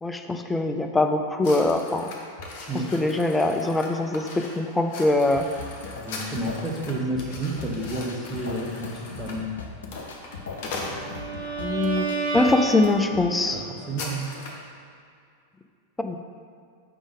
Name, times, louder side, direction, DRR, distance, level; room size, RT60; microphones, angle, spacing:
voice 1, 0.0-2.1 2.9-5.5 11.6-12.1 12.3-13.6 16.0-16.2, left 2 dB, 10° left, 5 dB, 0.4 m, -23 dB
sound 1, 1.4-11.6 12.2-12.4 12.8-12.9 13.2-14.7, left 3 dB, 45° left, 0.9 m, -40 dB
sound 2, 5.3-13.3, left 5 dB, 65° left, 0.5 m, -39 dB
voice 2, 6.0-9.5 13.5-13.6 13.9-14.3, right 1 dB, 10° right, -3 dB, 1.0 m, -30 dB
Bowed string instrument, 10.4-13.5, right 3 dB, 55° right, 1.2 m, -31 dB
5.0 x 3.5 x 5.3 m, 2.3 s
figure-of-eight pair, 90°, 0 cm